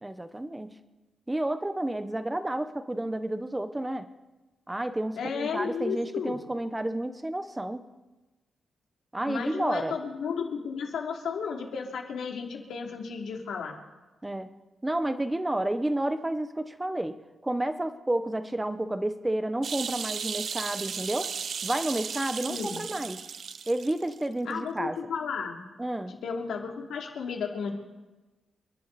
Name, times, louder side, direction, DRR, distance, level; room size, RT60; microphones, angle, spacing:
voice 1, 0.0-0.7 1.3-4.1 4.7-7.8 9.1-10.0 14.2-14.5 14.8-17.2 17.4-21.3 21.6-23.2 23.7-25.0 25.8-26.1, right 1 dB, 10° right, 10 dB, 0.8 m, -30 dB
voice 2, 5.1-6.4 9.3-13.8 22.5-22.9 24.5-25.6 26.2-27.7, left 6 dB, 80° left, 1 dB, 2.8 m, -33 dB
sound 1, 19.6-24.2 24.5-24.6, right 6 dB, 45° right, 0.4 m, -35 dB
28.5 x 11.5 x 4.1 m, 1.1 s
wide cardioid pair, 175°, 0 cm